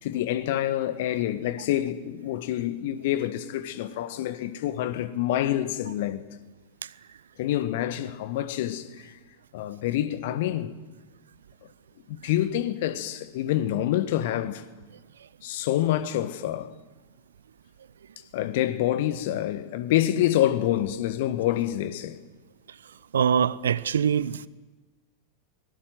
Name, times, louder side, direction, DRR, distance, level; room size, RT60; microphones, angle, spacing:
voice 1, 0.0-6.2 7.4-9.2 9.5-10.7 12.1-14.6 15.4-16.8 18.3-22.2, left 12 dB, 50° left, 1.4 m, -27 dB
voice 2, 23.1-24.5, right 8 dB, 65° right, 0.7 m, -23 dB
25.0 x 19.5 x 7.8 m
figure-of-eight pair, 90°, 0 cm